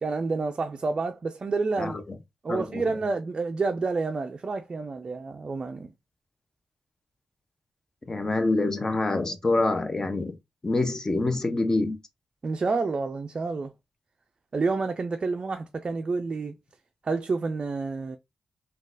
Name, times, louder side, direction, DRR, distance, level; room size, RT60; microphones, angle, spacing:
voice 1, 0.0-2.0 2.4-5.9 12.4-13.7 14.5-16.5 17.0-18.2, right 4 dB, 40° right, 0.3 m, -29 dB
voice 2, 1.8-2.2 2.5-2.8 8.1-10.4 10.6-12.0, left 2 dB, 25° left, 0.6 m, -26 dB
3.8 x 2.3 x 2.5 m
cardioid pair, 90°, 2 cm